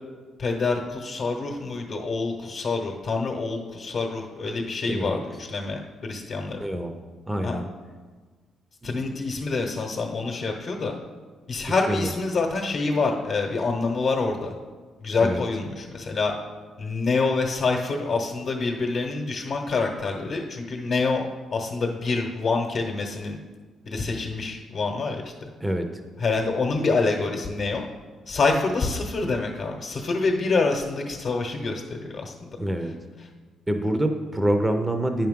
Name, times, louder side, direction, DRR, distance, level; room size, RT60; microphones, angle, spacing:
voice 1, 0.4-6.6 7.4-7.6 8.8-10.9 11.5-14.5 15.0-16.3 16.8-23.4 23.8-25.3 26.2-27.8 28.3-32.6, left 3 dB, 50° left, 0 dB, 0.9 m, -26 dB
voice 2, 4.9-5.2 6.6-6.9 7.3-7.7 9.0-9.2 11.9-12.1 15.2-15.4 25.6-25.9 32.6-33.0 33.7-35.3, right 1 dB, 10° right, 6 dB, 0.6 m, -26 dB
8.9 x 5.8 x 3.7 m, 1.4 s
cardioid pair, 90°, 0 cm